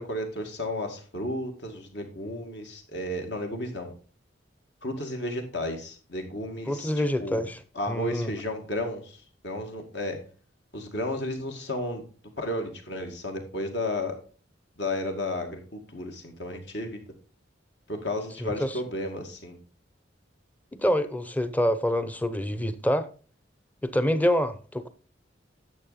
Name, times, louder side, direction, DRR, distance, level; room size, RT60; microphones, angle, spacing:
voice 1, 0.0-3.9 4.8-7.4 7.8-10.2 10.7-12.0 12.4-14.2 14.8-17.0 17.9-19.6, left 1 dB, 65° left, 2.2 m, -33 dB
voice 2, 6.7-7.6 7.9-8.3 18.4-18.8 20.8-23.1 23.8-24.9, equal, 10° left, 0.7 m, -26 dB
11.0 x 6.9 x 4.2 m
head